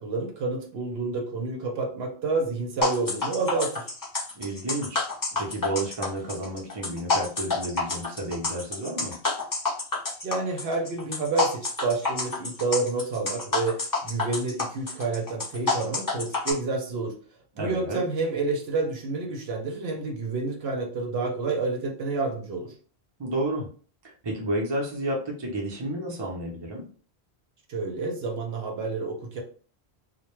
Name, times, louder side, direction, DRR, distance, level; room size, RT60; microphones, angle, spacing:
voice 1, 0.0-3.9 10.2-17.1 17.6-22.7 27.7-29.4, right 3 dB, 75° right, 3 dB, 0.8 m, -29 dB
sound 1, 2.8-16.5, left 3 dB, 30° left, 0.4 m, -28 dB
voice 2, 4.4-5.0 5.4-9.1 17.5-18.0 23.2-23.7 24.2-26.8, right 1 dB, 30° right, -1 dB, 0.6 m, -31 dB
2.2 x 2.1 x 3.0 m, 0.41 s
omnidirectional pair, 1.1 m